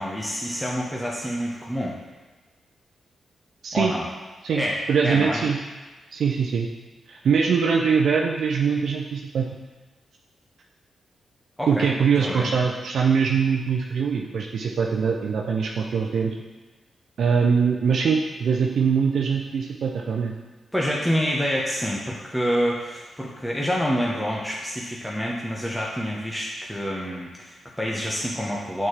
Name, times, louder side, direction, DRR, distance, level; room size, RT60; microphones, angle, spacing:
voice 1, 0.0-2.0 3.7-4.1 4.5-4.8 5.0-5.4 11.6-11.9 12.2-12.5 20.7-28.9, equal, 5° left, -4 dB, 1.1 m, -27 dB
voice 2, 4.4-5.6 6.1-6.7 7.1-9.5 11.7-16.3 17.2-20.4, right 6 dB, 75° right, 0 dB, 0.5 m, -22 dB
7.1 x 4.3 x 3.3 m, 1.3 s
supercardioid pair, 45°, 0 cm